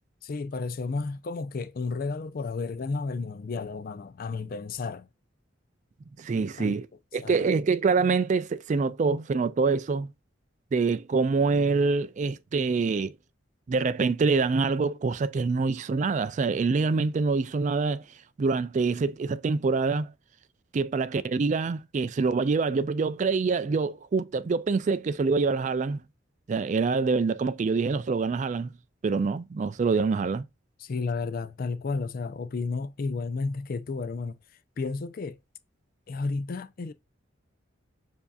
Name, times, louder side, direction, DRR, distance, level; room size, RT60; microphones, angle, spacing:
voice 1, 0.2-5.1 6.6-6.8 7.2-7.4 30.8-34.4 34.8-35.4 36.1-36.9, left 4 dB, 50° left, 0.4 m, -32 dB
voice 2, 6.2-6.9 7.1-10.1 10.7-13.1 13.7-18.0 18.4-20.1 20.7-26.0 26.5-28.7 29.0-30.4, right 4 dB, 40° right, 0.3 m, -25 dB
6.9 x 2.7 x 2.3 m
head